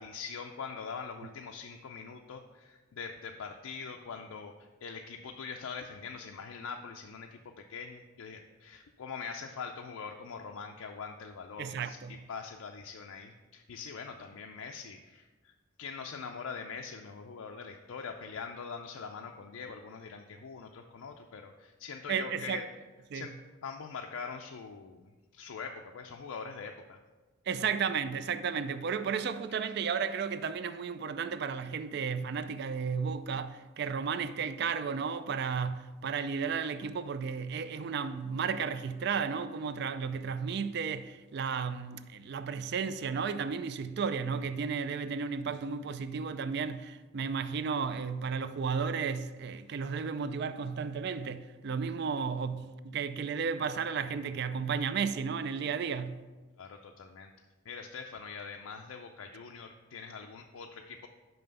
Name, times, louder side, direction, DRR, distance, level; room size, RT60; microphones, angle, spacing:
voice 1, 0.0-4.5 4.8-15.5 15.8-22.7 23.1-23.3 23.6-27.0 29.6-29.7 56.6-57.3 57.7-61.1, left 5 dB, 80° left, 0.4 m, -43 dB
voice 2, 11.6-12.2 22.1-22.6 23.1-23.3 27.5-56.2, right 6 dB, 50° right, 0.3 m, -33 dB
5.8 x 5.5 x 5.3 m
head